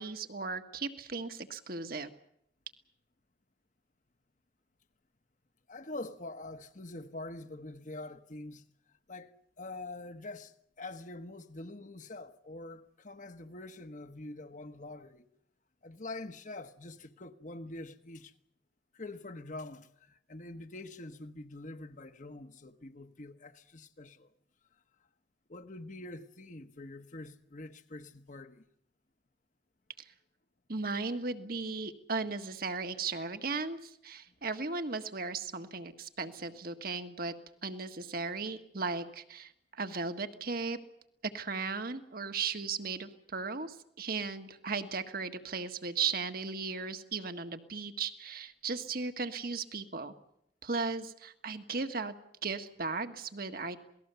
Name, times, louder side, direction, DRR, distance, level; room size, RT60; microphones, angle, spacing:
voice 1, 0.0-2.1 30.7-37.3 37.6-40.8 41.3-50.1 50.6-52.1 52.4-53.8, right 4 dB, 55° right, 1.6 m, -36 dB
voice 2, 5.7-8.6 9.1-9.3 9.6-15.3 15.8-18.3 18.9-24.3 25.5-28.6, left 2 dB, 45° left, 1.2 m, -45 dB
27.5 x 19.0 x 7.0 m
head